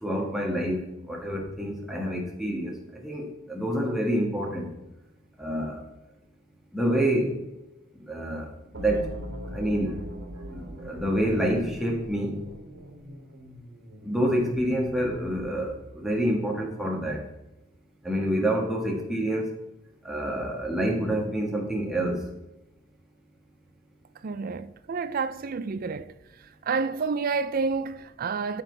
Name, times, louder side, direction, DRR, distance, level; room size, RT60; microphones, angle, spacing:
voice 1, 0.0-4.7 5.4-5.8 6.7-7.3 8.1-8.5 8.8-9.1 9.5-10.0 10.5-12.4 14.0-17.2 18.0-19.5 20.0-22.2, right 1 dB, ahead, 1.6 m, -27 dB
sound 1, 8.7-15.7, equal, 65° right, 2.7 m, -41 dB
voice 2, 24.2-26.1 26.6-28.6, right 4 dB, 45° right, 0.4 m, -29 dB
9.7 x 7.3 x 3.3 m
head